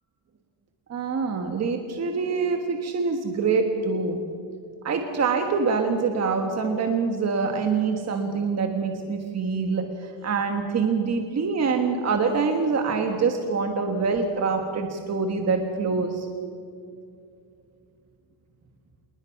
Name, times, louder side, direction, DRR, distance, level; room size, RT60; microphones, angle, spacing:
voice 1, 0.9-4.2 4.8-16.3, right 4 dB, 35° right, 5 dB, 1.5 m, -25 dB
27.5 x 21.0 x 5.9 m, 2.5 s
cardioid pair, 180°, 47 cm